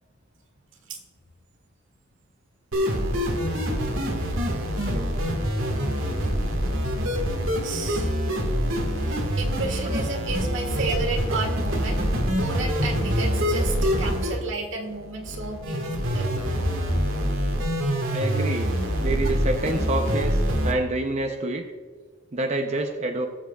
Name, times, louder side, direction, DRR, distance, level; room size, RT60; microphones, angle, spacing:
sound 1, 2.7-20.7, equal, 80° right, 1.7 m, -25 dB
voice 1, 7.6-8.2 9.0-12.0 12.3-16.4, right 3 dB, 65° right, 3 dB, 1.6 m, -32 dB
voice 2, 18.1-21.7 22.3-23.3, right 2 dB, 35° right, 3 dB, 0.7 m, -28 dB
19.5 x 7.4 x 2.3 m, 1.4 s
head